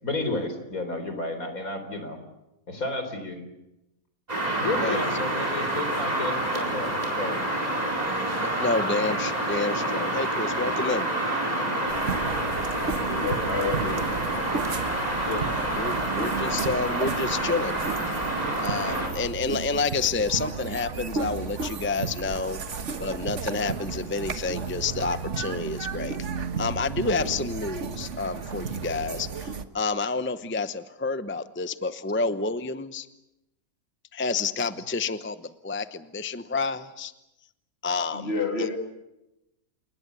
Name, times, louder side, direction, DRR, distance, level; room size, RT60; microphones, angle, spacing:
voice 1, 0.0-2.2 2.7-3.4 4.6-7.4 15.3-15.6, left 2 dB, 80° left, 8 dB, 4.5 m, -32 dB
sound 1, 4.3-19.1, right 1 dB, 30° right, 4.9 m, -28 dB
voice 2, 8.4-11.1 15.4-17.8 18.6-22.6 23.0-26.2 26.6-33.1 34.1-37.1 37.8-38.8, left 4 dB, 10° left, 12 dB, 0.7 m, -29 dB
sound 2, 11.9-29.6, right 5 dB, 60° right, 1.6 m, -33 dB
voice 3, 13.1-14.6 27.2-27.3 38.1-38.8, left 4 dB, 45° left, 5 dB, 3.3 m, -30 dB
28.5 x 19.5 x 8.2 m, 0.90 s
omnidirectional pair, 1.5 m